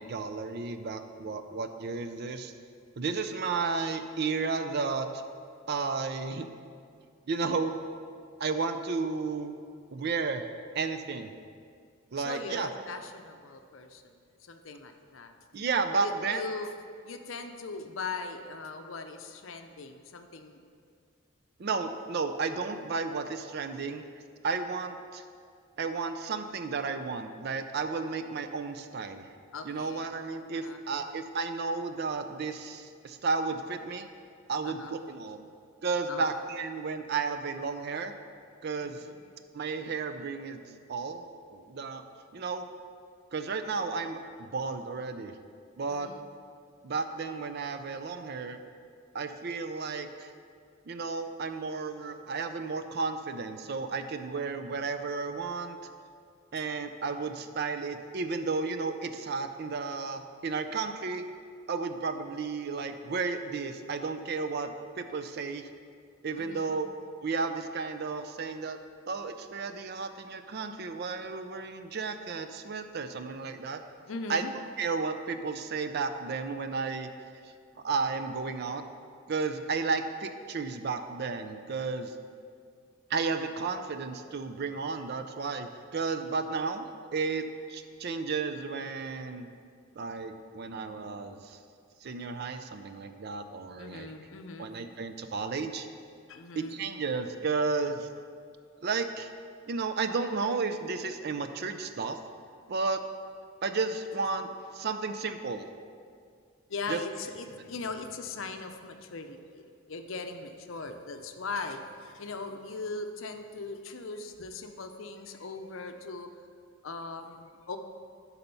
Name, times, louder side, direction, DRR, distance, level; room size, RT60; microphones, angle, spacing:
voice 1, 0.0-2.5 3.0-5.2 5.7-6.5 7.3-7.7 8.4-9.5 9.9-10.5 10.7-11.3 12.1-12.7 15.5-16.4 21.6-24.0 24.4-25.2 25.8-29.3 29.7-34.1 34.5-35.5 35.8-38.1 38.6-39.0 39.5-40.6 40.9-42.0 42.3-42.7 43.3-45.3 45.8-46.1 46.8-48.6 49.1-50.3 50.9-55.8 56.5-61.2 61.7-65.6 66.2-66.9 67.2-68.8 69.1-73.8 74.3-74.4 74.8-77.1 77.8-78.8 79.3-82.1 83.1-86.9 87.1-89.5 90.0-91.6 92.0-94.1 94.6-95.9 96.6-98.1 98.8-99.3 99.7-102.2 102.7-103.0 103.6-105.7 106.9-107.0, right 4 dB, 50° right, 9 dB, 0.5 m, -33 dB
voice 2, 12.2-14.1 14.4-15.3 16.0-16.7 17.0-20.6 29.5-30.0 30.5-31.1 34.6-34.9 36.1-36.3 38.8-39.2 45.9-46.3 66.4-66.7 74.1-74.5 93.8-94.7 96.3-96.8 106.7-116.3 116.8-117.8, left 3 dB, 70° left, 7 dB, 0.6 m, -40 dB
11.0 x 4.2 x 5.5 m, 2.2 s
head